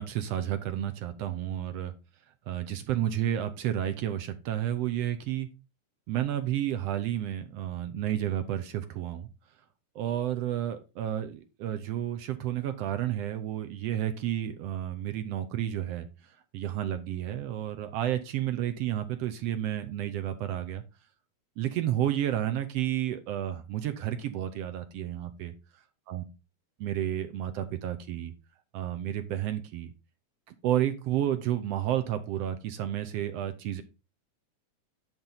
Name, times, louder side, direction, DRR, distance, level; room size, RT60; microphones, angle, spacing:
voice 1, 0.0-1.9 2.5-5.5 6.1-9.3 9.9-16.1 16.5-20.8 21.6-25.5 26.1-26.2 26.8-28.3 28.7-29.9 30.6-33.8, right 11 dB, 75° right, 9 dB, 1.5 m, -31 dB
10.5 x 3.6 x 5.5 m, 0.29 s
omnidirectional pair, 3.6 m